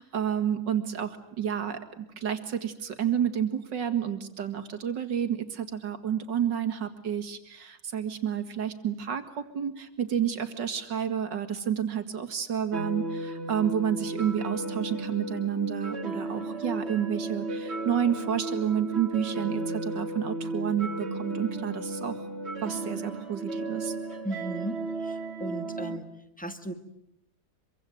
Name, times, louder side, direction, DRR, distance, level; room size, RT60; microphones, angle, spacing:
voice 1, 0.0-22.2 22.6-23.9, right 9 dB, 75° right, 8 dB, 2.7 m, -30 dB
sound 1, 12.7-26.0, right 2 dB, 35° right, 2.9 m, -34 dB
voice 2, 24.2-26.1 26.4-26.7, right 1 dB, 5° left, 8 dB, 2.0 m, -36 dB
25.5 x 24.0 x 9.3 m, 0.77 s
omnidirectional pair, 2.0 m